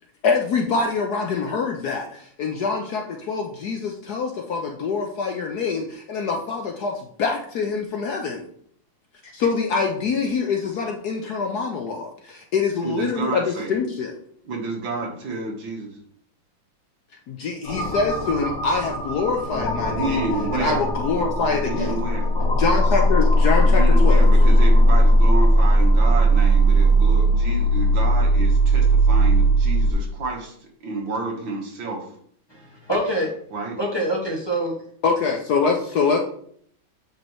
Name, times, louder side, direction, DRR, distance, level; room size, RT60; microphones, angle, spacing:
voice 1, 0.2-8.4 9.3-14.1 17.3-20.2 20.5-22.0 22.6-24.3 35.0-36.2, left 4 dB, 65° left, 2 dB, 1.1 m, -25 dB
voice 2, 12.8-13.7 14.4-16.0 19.9-20.9 21.6-22.3 23.6-32.1 33.5-33.8, right 3 dB, 70° right, 1 dB, 2.2 m, -29 dB
sound 1, 17.6-29.9, right 1 dB, 45° left, 2.4 m, -18 dB
voice 3, 32.5-33.3 33.8-34.7, right 1 dB, 15° left, -3 dB, 1.7 m, -25 dB
8.5 x 5.4 x 3.1 m, 0.62 s
omnidirectional pair, 2.2 m